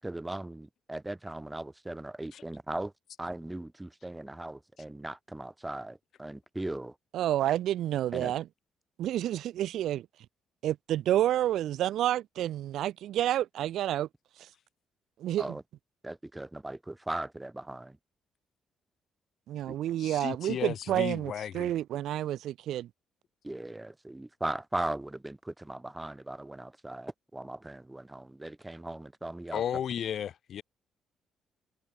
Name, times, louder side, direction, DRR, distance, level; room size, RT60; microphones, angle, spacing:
voice 1, 0.0-2.9 3.2-6.9 8.1-8.3 15.4-15.6 16.0-18.0 19.7-19.8 23.4-29.6, right 1 dB, 10° right, 6.5 m, -38 dB
voice 2, 7.1-8.4 9.0-10.0 10.6-14.1 14.4-14.5 15.2-15.4 19.5-22.9, right 12 dB, 80° right, 0.5 m, -29 dB
voice 3, 20.0-21.7 29.5-30.6, left 9 dB, 65° left, 1.8 m, -34 dB
cardioid pair, 90°, 0 cm